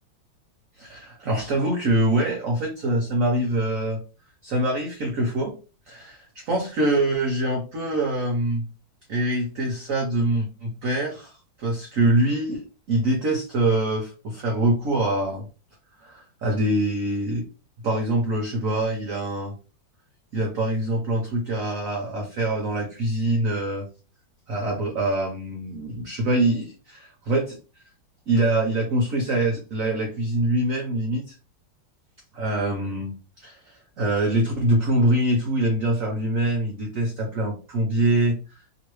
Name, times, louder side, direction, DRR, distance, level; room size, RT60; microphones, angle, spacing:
voice 1, 0.8-4.0 4.4-5.5 5.9-8.6 9.1-15.4 16.0-17.4 17.8-19.5 20.3-23.9 24.5-27.6 28.3-31.3 32.4-38.8, right 1 dB, 60° right, 1 dB, 0.9 m, -24 dB
3.1 x 3.0 x 3.0 m, 0.33 s
omnidirectional pair, 2.2 m